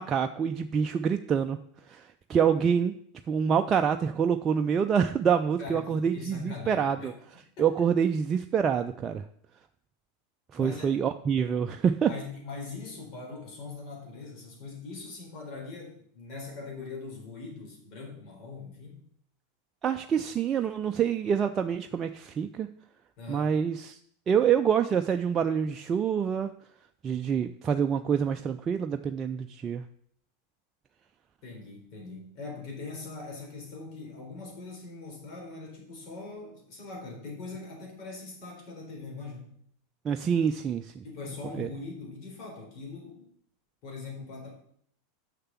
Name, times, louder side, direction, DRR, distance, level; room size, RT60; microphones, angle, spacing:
voice 1, 0.0-1.6 1.9-2.9 3.3-7.1 7.6-9.2 10.5-12.1 19.8-22.7 23.3-24.0 24.3-26.5 27.0-29.8 40.0-41.0 41.6-41.7, right 7 dB, 30° right, 6 dB, 0.5 m, -26 dB
voice 2, 5.6-7.2 7.6-7.9 10.6-10.9 12.1-19.0 23.2-23.5 31.4-39.5 41.0-43.3 43.8-44.5, left 3 dB, 50° left, 0 dB, 4.1 m, -41 dB
6.7 x 6.7 x 7.2 m, 0.66 s
figure-of-eight pair, 90°, 0 cm